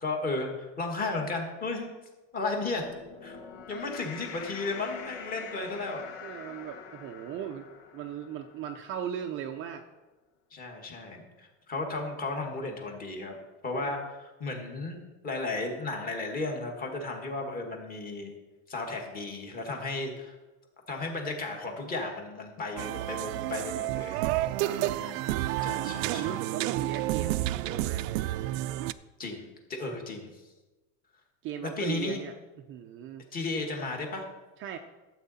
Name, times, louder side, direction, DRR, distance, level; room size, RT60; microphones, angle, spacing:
voice 1, 0.0-1.9 2.3-2.8 3.2-3.4 3.7-6.0 10.5-13.4 13.6-15.0 15.2-18.3 18.7-20.3 20.9-24.2 25.0-25.3 25.6-26.4 29.2-30.3 31.6-32.2 33.3-34.3, left 3 dB, 20° left, 2 dB, 1.8 m, -34 dB
sound 1, 2.6-9.2, left 7 dB, 65° left, 1.4 m, -45 dB
voice 2, 6.2-7.7 7.9-9.8 13.7-14.1 24.6-24.8 25.7-28.2 31.4-32.3 32.7-33.2 34.6-34.8, right 9 dB, 35° right, 5 dB, 0.5 m, -38 dB
sound 2, 22.8-28.9, right 15 dB, 80° right, 0.5 m, -30 dB
12.5 x 7.9 x 4.2 m, 1.1 s
cardioid pair, 160°, 38 cm